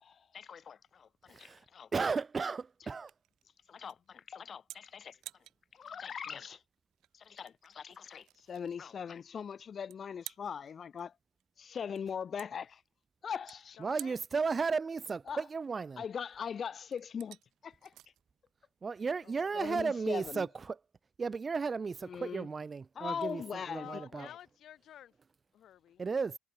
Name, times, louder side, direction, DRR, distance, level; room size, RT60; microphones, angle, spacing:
voice 1, 0.0-1.9 2.8-2.9 3.7-5.2 5.7-6.6 7.1-11.1 11.7-12.8 13.2-13.8 15.3-15.4 16.0-17.4 17.6-17.9 19.5-20.5 22.0-22.5 22.9-23.9 24.1-24.3, left 7 dB, 35° left, 1.0 m, -41 dB
sound 1, 0.8-19.6, right 14 dB, 75° right, 1.4 m, -55 dB
voice 2, 1.9-3.1 13.8-16.0 18.8-20.8 21.2-23.4 23.7-24.3 26.0-26.4, right 5 dB, 25° right, 0.4 m, -34 dB
voice 3, 13.8-14.2 19.2-19.7 23.6-25.1 25.5-26.0, left 11 dB, 55° left, 7.0 m, -52 dB
cardioid pair, 135°, 0 cm